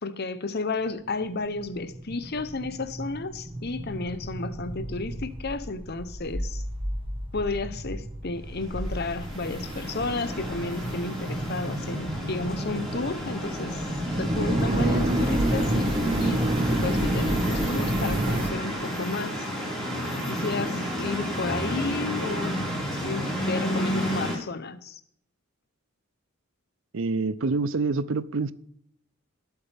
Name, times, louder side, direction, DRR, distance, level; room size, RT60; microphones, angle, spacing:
voice 1, 0.0-6.6 7.3-13.9 14.2-16.4 16.7-19.5 20.3-25.0, left 3 dB, 45° left, 0.8 m, -32 dB
sound 1, 1.3-18.5, right 1 dB, 25° right, 1.4 m, -29 dB
sound 2, 8.6-24.4, equal, ahead, 4.6 m, -32 dB
voice 2, 26.9-28.5, right 3 dB, 60° right, 0.6 m, -26 dB
19.5 x 8.2 x 3.5 m
head